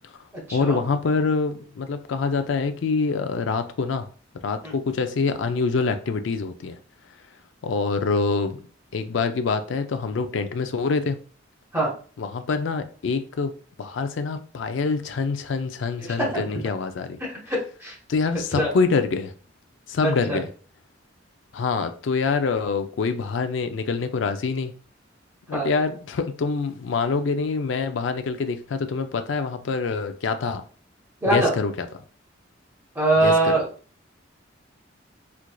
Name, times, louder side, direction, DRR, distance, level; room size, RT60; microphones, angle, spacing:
voice 1, 0.5-4.1 4.4-6.8 7.6-8.6 8.9-11.2 12.2-13.5 13.8-17.2 18.1-19.3 19.9-20.5 21.5-24.7 25.5-30.6 31.3-31.9 33.2-33.5, left 4 dB, 70° left, 0.4 m, -25 dB
voice 2, 16.0-16.4 17.5-17.9 18.5-18.7 20.0-20.4 25.5-25.7 31.2-31.5 32.9-33.6, right 2 dB, 15° right, 1.1 m, -22 dB
4.4 x 2.5 x 2.2 m
head